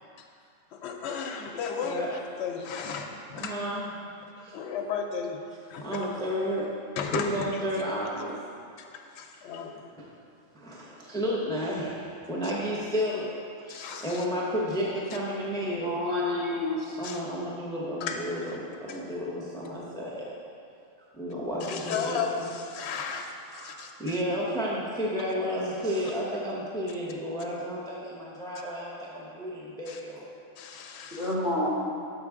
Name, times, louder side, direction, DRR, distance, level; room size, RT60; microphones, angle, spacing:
voice 1, 0.7-2.1 2.4-3.5 4.5-5.4 5.7-6.0 7.0-7.5 8.9-9.7 13.7-14.2 17.0-17.2 18.0-18.2 18.9-19.0 21.6-24.2 29.9-30.0 30.6-31.3, left 6 dB, 65° left, 2 dB, 0.8 m, -34 dB
voice 2, 3.4-3.9 4.3-4.6 5.8-6.7 7.1-8.4 10.0-10.1 10.5-13.3 13.6-16.0 17.0-20.3 21.1-22.5 23.5-30.3, equal, 5° left, -5 dB, 0.6 m, -32 dB
voice 3, 15.6-16.8 31.2-31.7, left 1 dB, 75° right, -8 dB, 2.0 m, -28 dB
6.8 x 5.5 x 3.5 m, 2.4 s
omnidirectional pair, 1.3 m